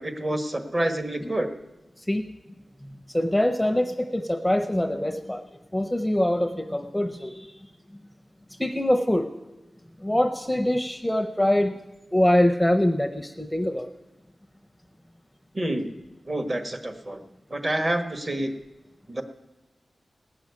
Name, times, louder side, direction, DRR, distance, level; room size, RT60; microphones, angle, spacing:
voice 1, 0.0-1.5 15.5-15.9 16.2-17.2 17.5-18.5 19.1-19.2, right 1 dB, 35° right, 6 dB, 1.4 m, -28 dB
voice 2, 3.1-5.4 5.7-7.5 8.6-9.3 10.0-11.8 12.1-13.9, left 1 dB, 5° left, 6 dB, 0.7 m, -23 dB
17.5 x 6.4 x 9.5 m, 1.0 s
wide cardioid pair, 115°, 0 cm